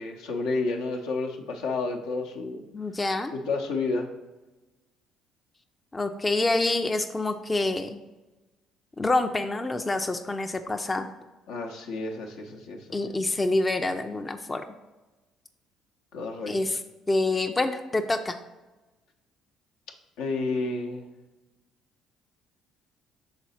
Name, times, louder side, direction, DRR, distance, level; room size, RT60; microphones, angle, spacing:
voice 1, 0.0-2.6 3.3-4.1 11.5-13.2 16.1-16.6 20.2-21.1, left 3 dB, 70° left, 2 dB, 0.7 m, -30 dB
voice 2, 2.7-3.3 5.9-8.0 9.0-11.1 12.9-14.6 16.5-16.8 17.1-18.4, left 2 dB, 20° left, 6 dB, 0.5 m, -27 dB
6.0 x 4.1 x 4.2 m, 1.1 s
hypercardioid pair, 55°, 0 cm